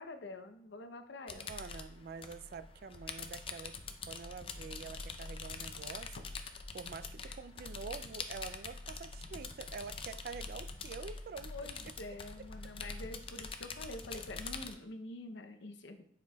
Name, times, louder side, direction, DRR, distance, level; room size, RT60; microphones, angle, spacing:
voice 1, 0.0-1.5 11.5-16.1, left 2 dB, 85° left, 7 dB, 0.7 m, -46 dB
sound 1, 1.3-14.7, left 4 dB, 30° left, 0.4 m, -45 dB
voice 2, 1.3-3.8 4.1-6.2 6.7-11.5 12.1-12.5, right 5 dB, 55° right, 14 dB, 0.3 m, -47 dB
9.0 x 5.1 x 2.3 m, 0.65 s
head